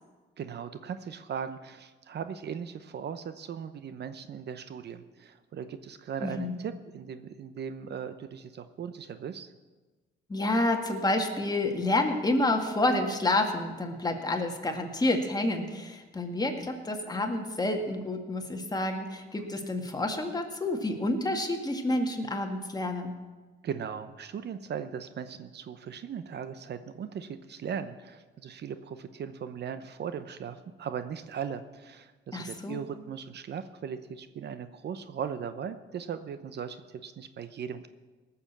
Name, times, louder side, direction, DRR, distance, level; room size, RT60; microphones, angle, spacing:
voice 1, 0.4-9.5 23.6-37.9, right 7 dB, 60° right, 11 dB, 0.8 m, -38 dB
voice 2, 6.2-6.5 10.3-23.1 32.3-32.8, left 2 dB, 20° left, 3 dB, 2.0 m, -29 dB
18.0 x 7.1 x 7.4 m, 1.3 s
cardioid pair, 90°, 20 cm